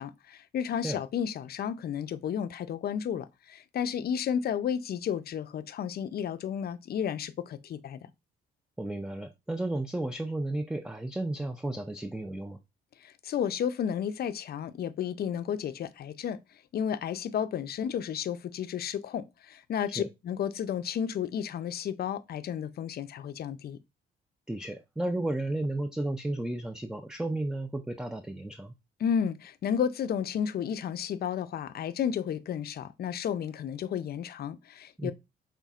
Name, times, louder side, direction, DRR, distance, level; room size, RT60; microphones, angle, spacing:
voice 1, 0.0-8.1 13.0-16.4 16.7-23.8 29.0-35.1, left 8 dB, 50° left, 0.5 m, -32 dB
voice 2, 8.8-12.6 20.0-20.1 24.5-28.7 35.0-35.1, right 1 dB, 5° right, 0.4 m, -33 dB
5.6 x 3.6 x 2.4 m
cardioid pair, 90°, 20 cm